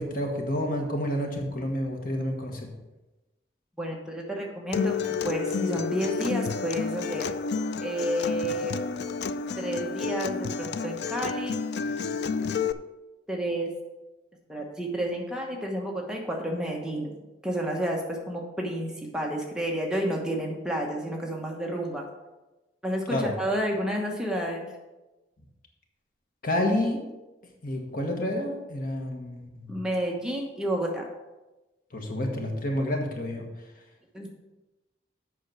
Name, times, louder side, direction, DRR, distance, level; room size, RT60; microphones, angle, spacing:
voice 1, 0.0-2.7 23.1-23.3 26.4-27.0 27.6-29.7 31.9-33.5, left 1 dB, 50° left, 2 dB, 1.4 m, -29 dB
voice 2, 3.8-4.9 5.2-7.3 7.8-8.7 9.6-11.6 13.3-13.7 14.5-17.2 17.4-22.0 22.8-24.7 29.7-31.1 34.1-34.3, equal, 5° right, -1 dB, 1.1 m, -30 dB
Acoustic guitar, 4.7-12.7, left 5 dB, 70° left, 0.4 m, -30 dB
8.1 x 5.7 x 6.1 m, 1.1 s
head